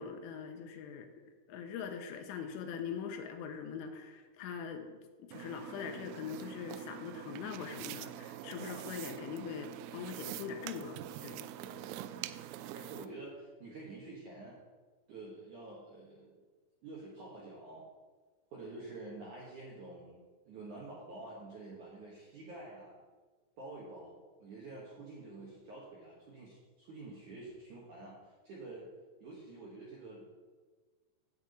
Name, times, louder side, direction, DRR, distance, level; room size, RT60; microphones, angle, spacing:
voice 1, 0.0-11.5, left 7 dB, 85° left, 5 dB, 3.4 m, -42 dB
sound 1, 5.3-13.1, right 13 dB, 85° right, 3.0 m, -45 dB
voice 2, 12.1-12.4 12.7-14.6 15.1-16.4 16.8-17.9 18.5-20.2 20.5-23.0 23.6-28.2 28.4-28.9 29.2-30.4, right 2 dB, 65° right, -5 dB, 2.0 m, -48 dB
10.5 x 4.8 x 8.2 m, 1.4 s
omnidirectional pair, 5.8 m